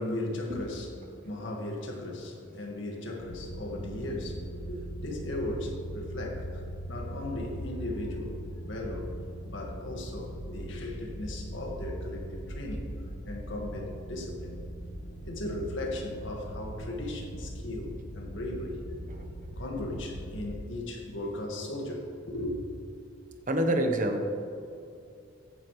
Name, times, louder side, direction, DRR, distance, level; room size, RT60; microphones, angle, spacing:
voice 1, 0.0-9.1 9.4-14.5 15.2-18.8 19.1-19.2 19.6-22.6, left 1 dB, 70° left, 0 dB, 1.9 m, -37 dB
sound 1, 3.2-20.5, right 1 dB, 40° left, 1.5 m, -40 dB
voice 2, 23.5-24.3, right 1 dB, 45° right, 5 dB, 1.1 m, -27 dB
14.0 x 9.6 x 3.3 m, 2.6 s
head